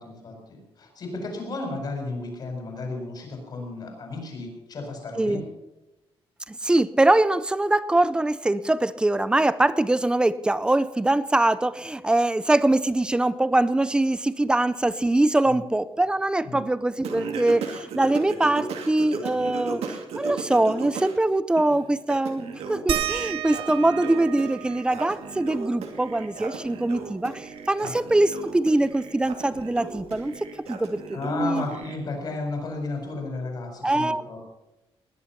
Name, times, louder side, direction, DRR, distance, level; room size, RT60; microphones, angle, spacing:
voice 1, 0.0-5.5 16.4-16.6 27.8-27.9 31.1-34.4, left 3 dB, 40° left, 2 dB, 4.8 m, -33 dB
voice 2, 6.5-19.8 20.1-31.7 33.8-34.4, right 2 dB, 10° right, 15 dB, 0.5 m, -23 dB
Singing, 17.0-21.2 21.6-32.0, right 5 dB, 85° right, 2.4 m, -36 dB
sound 1, 22.9-28.0 28.4-28.5 28.8-30.6 31.8-31.9 32.6-32.7, right 11 dB, 60° right, 1.2 m, -36 dB
19.5 x 10.5 x 5.8 m, 0.97 s
wide cardioid pair, 175°, 10 cm